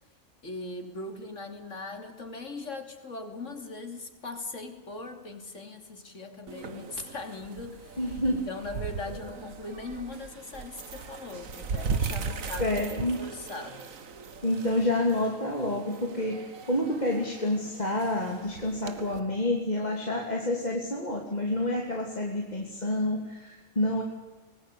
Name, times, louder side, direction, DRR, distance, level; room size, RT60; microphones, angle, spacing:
voice 1, 0.4-13.8, left 3 dB, 65° left, 5 dB, 3.4 m, -40 dB
sound 1, 6.5-19.2, right 5 dB, 85° right, 1.9 m, -38 dB
voice 2, 8.0-8.5 12.6-13.2 14.4-24.0, left 1 dB, 30° left, 0 dB, 2.9 m, -28 dB
24.0 x 19.5 x 8.5 m, 1.2 s
omnidirectional pair, 1.4 m